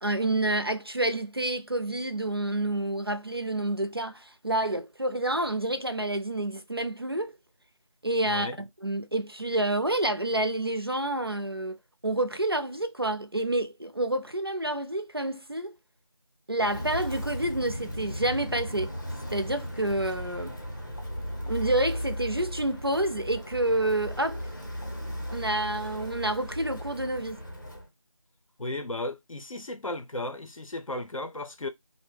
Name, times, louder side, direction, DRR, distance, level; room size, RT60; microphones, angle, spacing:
voice 1, 0.0-7.3 8.0-11.8 12.0-15.7 16.5-18.9 19.3-20.6 21.4-24.4 25.3-27.4, right 1 dB, 45° right, 0.4 m, -28 dB
voice 2, 8.3-8.6 28.6-31.7, left 2 dB, 75° left, 0.7 m, -35 dB
Walk footsteps, 16.6-27.9, equal, 35° left, 0.6 m, -36 dB
2.6 x 2.0 x 3.1 m
figure-of-eight pair, 175°, 17 cm